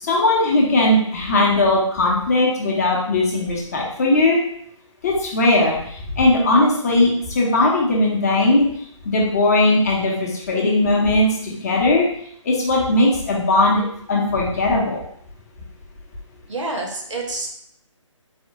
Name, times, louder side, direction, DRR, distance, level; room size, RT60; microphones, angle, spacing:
voice 1, 0.0-4.4 5.0-8.7 9.0-12.1 12.4-13.8 14.1-15.0, left 2 dB, 30° left, -2 dB, 0.7 m, -18 dB
voice 2, 16.5-17.5, right 2 dB, 70° right, 1 dB, 0.8 m, -28 dB
4.1 x 2.2 x 2.7 m, 0.67 s
figure-of-eight pair, 145°, 17 cm